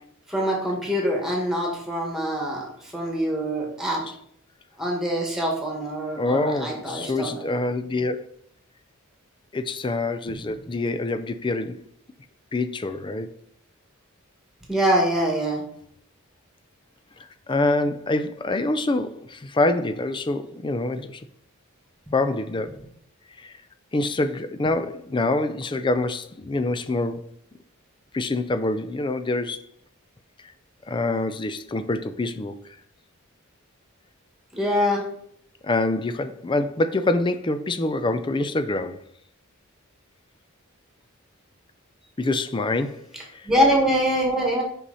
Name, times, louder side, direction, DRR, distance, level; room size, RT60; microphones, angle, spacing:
voice 1, 0.3-2.7 2.9-4.0 4.8-7.5 14.7-15.6 22.1-22.2 34.5-35.0 43.5-44.6, equal, ahead, 1.8 m, -24 dB
voice 2, 6.2-8.3 9.5-11.8 12.5-13.3 17.2-21.2 22.1-22.8 23.4-23.5 23.9-27.3 28.1-29.7 30.9-32.5 35.6-39.0 42.2-43.5, left 2 dB, 20° left, 0.4 m, -26 dB
5.8 x 5.5 x 4.1 m
head